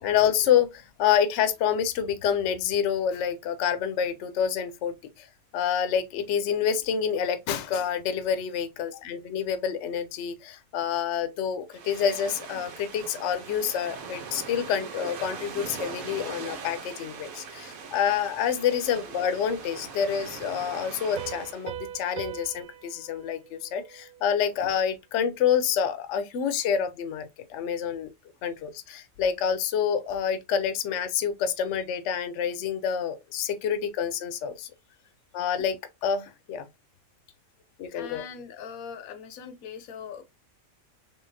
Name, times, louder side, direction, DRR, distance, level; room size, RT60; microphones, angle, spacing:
voice 1, 0.0-5.3 5.5-28.1 28.4-34.7 35.3-36.7 37.8-38.2, left 8 dB, 65° left, 0.9 m, -27 dB
sound 1, 11.7-21.7, right 5 dB, 90° right, 1.3 m, -41 dB
Piano, 21.2-24.6, right 9 dB, 60° right, 0.5 m, -41 dB
voice 2, 37.9-40.2, left 7 dB, 85° left, 1.1 m, -41 dB
3.7 x 3.3 x 2.6 m
omnidirectional pair, 1.4 m